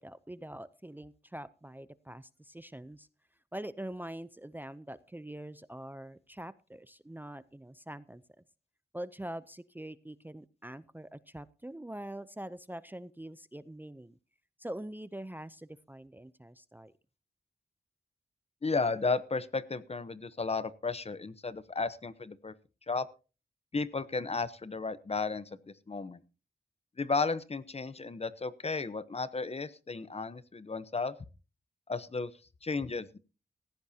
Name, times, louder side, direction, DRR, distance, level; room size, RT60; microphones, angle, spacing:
voice 1, 0.0-3.1 3.5-8.2 8.9-14.2 14.6-16.9, right 1 dB, 10° right, 15 dB, 0.6 m, -44 dB
voice 2, 18.6-22.5 22.9-23.1 23.7-26.2 27.0-31.1 31.9-32.3 32.6-33.2, left 4 dB, 35° left, 15 dB, 0.9 m, -34 dB
17.5 x 15.0 x 2.8 m, 0.34 s
wide cardioid pair, 85°, 17 cm